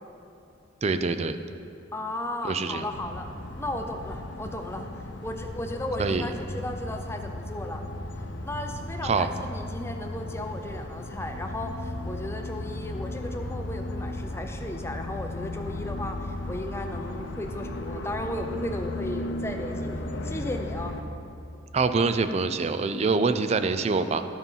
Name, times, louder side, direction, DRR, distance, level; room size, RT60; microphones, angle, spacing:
voice 1, 0.8-1.4 2.4-2.9 6.0-6.3 9.0-9.3 21.7-24.3, right 4 dB, 35° right, 10 dB, 0.4 m, -25 dB
voice 2, 1.9-3.3 3.6-4.9 5.2-7.9 8.4-21.0, left 1 dB, 15° left, 4 dB, 0.6 m, -35 dB
sound 1, 2.9-21.0, left 1 dB, 70° left, 0.7 m, -35 dB
11.5 x 5.5 x 5.5 m, 2.6 s
head